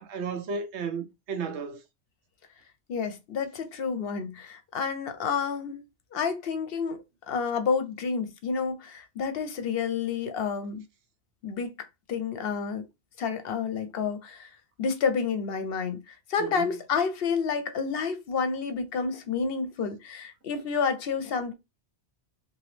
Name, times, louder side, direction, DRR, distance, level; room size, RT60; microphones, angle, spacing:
voice 1, 0.0-1.8 16.4-16.7, right 5 dB, 90° right, 1.0 m, -33 dB
voice 2, 2.9-5.8 6.1-7.0 7.3-10.8 11.4-12.8 13.2-14.5 14.8-21.5, left 5 dB, 65° left, 0.8 m, -30 dB
2.9 x 2.6 x 3.2 m
omnidirectional pair, 1.1 m